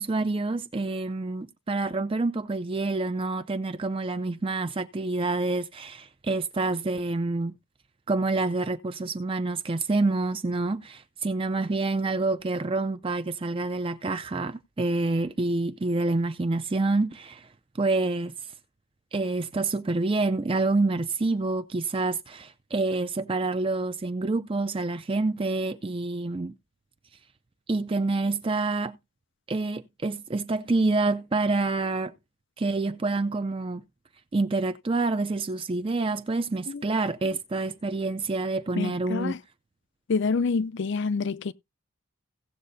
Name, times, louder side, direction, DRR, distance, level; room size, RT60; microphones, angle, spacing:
voice 1, 0.0-7.6 8.1-17.5 17.7-18.5 19.1-26.5 27.7-29.0 29.5-32.1 32.6-33.8 34.3-39.4, right 3 dB, 25° right, 0.4 m, -27 dB
voice 2, 38.8-39.4 40.1-41.5, left 4 dB, 55° left, 0.5 m, -27 dB
17.0 x 7.4 x 2.7 m
head